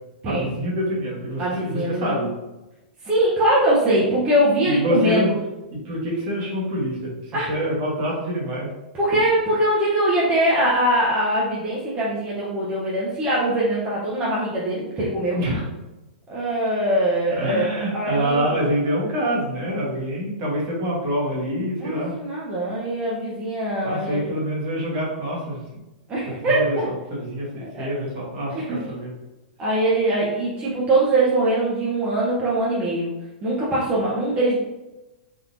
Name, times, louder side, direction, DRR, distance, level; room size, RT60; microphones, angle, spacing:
voice 1, 0.2-2.3 4.6-5.3 5.8-8.7 15.3-15.6 17.4-22.1 23.8-25.6 26.3-26.8 27.1-29.1, equal, 50° right, -4 dB, 1.4 m, -26 dB
voice 2, 1.4-2.2 3.0-5.2 7.3-7.5 8.9-15.4 16.3-18.6 21.8-24.3 26.1-26.9 27.6-27.9 28.5-28.8 29.6-33.1 33.4-34.6, right 1 dB, 25° right, -7 dB, 0.9 m, -22 dB
3.7 x 2.7 x 2.6 m, 1.0 s
hypercardioid pair, 115°, 5 cm